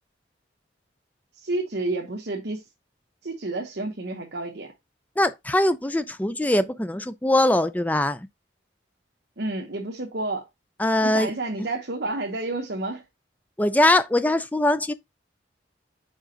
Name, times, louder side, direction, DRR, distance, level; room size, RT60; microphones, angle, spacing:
voice 1, 1.3-2.7 3.2-4.7 9.4-10.5 11.0-13.0, right 2 dB, 60° right, 1.0 m, -30 dB
voice 2, 5.2-8.3 10.8-11.3 13.6-14.9, left 1 dB, 10° left, 0.4 m, -22 dB
5.0 x 4.9 x 3.9 m
head